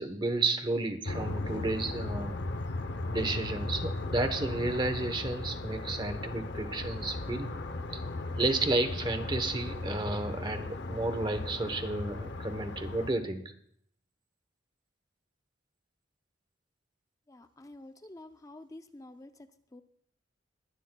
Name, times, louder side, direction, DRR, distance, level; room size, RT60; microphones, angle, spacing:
voice 1, 0.0-2.4 3.1-7.5 7.9-8.0 8.4-13.4, right 2 dB, 25° right, 8 dB, 1.0 m, -32 dB
sound 1, 1.0-13.1, left 2 dB, 65° left, 0.8 m, -37 dB
sound 2, 3.5-12.0, left 1 dB, 35° left, 1.0 m, -48 dB
voice 2, 17.3-19.8, left 2 dB, 20° left, 9 dB, 0.5 m, -49 dB
21.0 x 12.0 x 2.3 m, 0.66 s
head